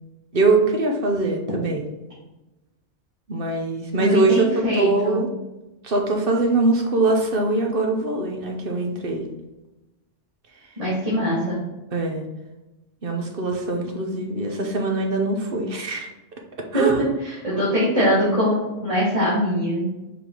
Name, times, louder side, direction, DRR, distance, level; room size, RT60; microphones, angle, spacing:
voice 1, 0.3-1.9 3.3-5.3 5.8-9.2 11.9-12.2 13.0-16.1 16.7-17.0, right 3 dB, 55° right, 2 dB, 1.1 m, -22 dB
voice 2, 3.9-5.2 10.8-11.6 16.7-16.9 17.2-19.9, equal, 30° right, -9 dB, 2.0 m, -22 dB
5.2 x 5.2 x 3.8 m, 1.0 s
omnidirectional pair, 1.2 m